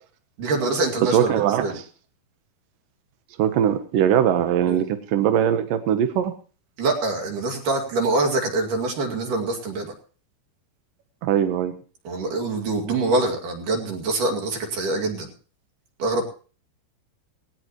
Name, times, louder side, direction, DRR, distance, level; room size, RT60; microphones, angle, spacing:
voice 1, 0.4-1.8 4.7-4.8 6.8-9.9 12.1-15.3 16.0-16.2, right 2 dB, 50° right, 2 dB, 3.5 m, -25 dB
voice 2, 1.1-1.7 3.4-6.3 11.2-11.7, right 9 dB, 80° right, 9 dB, 1.9 m, -21 dB
18.0 x 18.0 x 3.0 m, 0.39 s
omnidirectional pair, 5.2 m